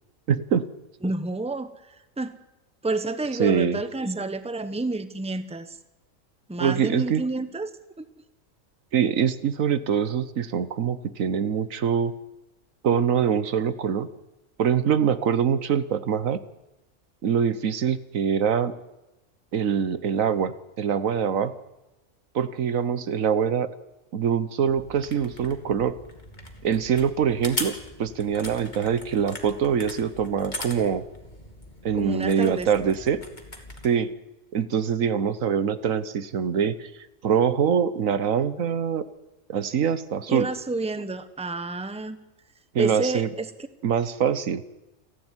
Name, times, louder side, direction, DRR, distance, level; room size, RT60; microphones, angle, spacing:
voice 1, 0.3-0.6 3.4-3.8 6.6-7.2 8.9-12.1 12.8-14.1 14.6-16.4 17.2-18.7 19.5-21.5 22.3-23.7 24.1-25.9 26.6-27.7 28.0-31.0 31.8-33.2 33.8-34.1 34.5-36.9 37.2-39.0 39.5-40.5 42.7-43.3 43.8-44.6, right 7 dB, 80° right, 14 dB, 1.4 m, -24 dB
voice 2, 1.0-1.7 2.2-2.3 2.8-5.8 6.5-8.1 31.9-32.7 40.3-42.2 42.8-43.5, right 2 dB, 5° right, 11 dB, 1.0 m, -29 dB
sound 1, 24.7-33.9, left 2 dB, 35° left, 2.6 m, -40 dB
28.5 x 12.0 x 9.8 m, 1.0 s
omnidirectional pair, 1.4 m